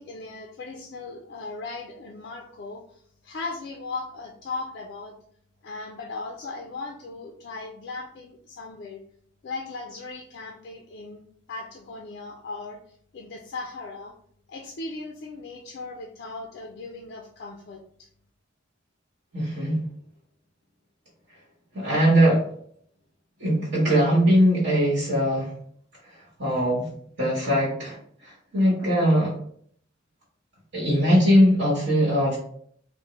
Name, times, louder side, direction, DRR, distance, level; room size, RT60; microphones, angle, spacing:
voice 1, 0.0-5.1 5.6-9.0 9.4-11.2 11.5-14.1 14.5-18.1, left 3 dB, 55° left, 2 dB, 0.3 m, -38 dB
voice 2, 19.3-19.8 21.7-22.4 23.4-25.5 26.0-26.9 27.2-29.4 30.7-32.4, equal, 65° right, -7 dB, 1.1 m, -21 dB
3.4 x 2.1 x 3.0 m, 0.63 s
head